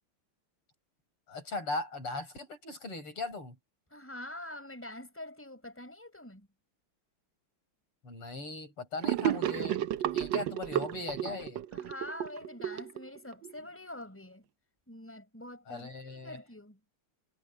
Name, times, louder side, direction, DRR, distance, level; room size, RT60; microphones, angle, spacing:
voice 1, 1.3-3.6 8.0-9.8 10.1-11.6 15.7-16.4, left 3 dB, 85° left, 8.9 m, -39 dB
voice 2, 3.9-6.5 11.7-14.4 14.9-16.8, left 1 dB, 5° left, 6.0 m, -45 dB
Gurgling / Sink (filling or washing), 9.0-13.5, right 11 dB, 70° right, 1.3 m, -32 dB
omnidirectional pair, 2.4 m